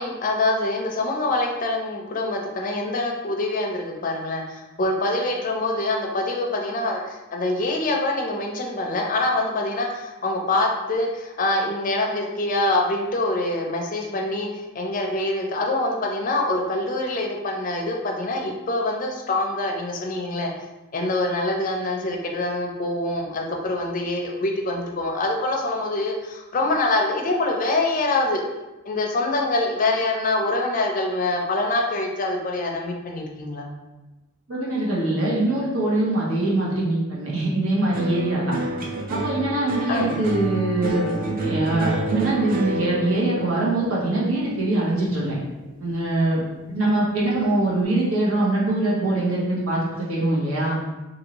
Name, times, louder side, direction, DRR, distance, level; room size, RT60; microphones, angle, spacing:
voice 1, 0.0-20.5 20.9-28.4 28.9-33.7 39.9-40.1, left 2 dB, 40° left, 1 dB, 0.4 m, -25 dB
voice 2, 34.5-38.6 39.1-41.1 41.4-45.4 45.8-46.4 46.7-50.8, right 2 dB, 80° right, -6 dB, 1.1 m, -23 dB
sound 1, 37.9-46.4 46.7-47.4, right 1 dB, 40° right, 0.4 m, -30 dB
2.8 x 2.6 x 2.9 m, 1.1 s
head